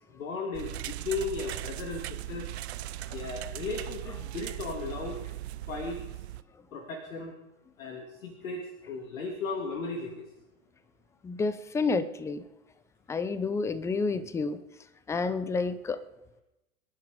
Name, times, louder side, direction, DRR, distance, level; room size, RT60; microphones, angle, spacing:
voice 1, 0.0-2.5 3.1-5.2 5.7-6.0 6.7-7.3 7.8-10.3, left 4 dB, 65° left, 2 dB, 2.7 m, -36 dB
sound 1, 0.5-6.4, right 15 dB, 50° right, 0.7 m, -38 dB
voice 2, 11.2-12.4 13.1-14.6 15.1-16.0, left 4 dB, 5° left, 15 dB, 0.6 m, -29 dB
26.0 x 11.0 x 5.1 m, 0.93 s
figure-of-eight pair, 110°, 43 cm